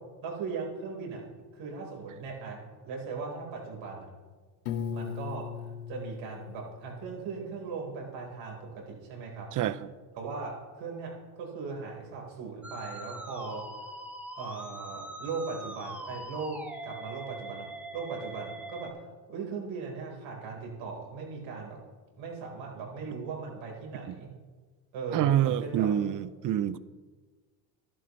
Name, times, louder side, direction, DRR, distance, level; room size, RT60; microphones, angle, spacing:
voice 1, 0.2-1.2 1.5-4.1 4.9-5.4 5.9-9.5 10.1-11.1 11.4-13.6 14.4-17.7 17.9-18.9 19.3-21.8 22.2-24.3 24.9-25.9, right 4 dB, 65° right, -1 dB, 4.3 m, -38 dB
Piano, 4.7-7.6, left 8 dB, 80° left, 1.5 m, -38 dB
Musical instrument, 12.6-18.9, right 1 dB, 5° right, 1.7 m, -42 dB
voice 2, 25.1-26.8, right 11 dB, 40° right, 16 dB, 0.6 m, -27 dB
14.5 x 11.5 x 3.2 m, 1.4 s
supercardioid pair, 100°, 49 cm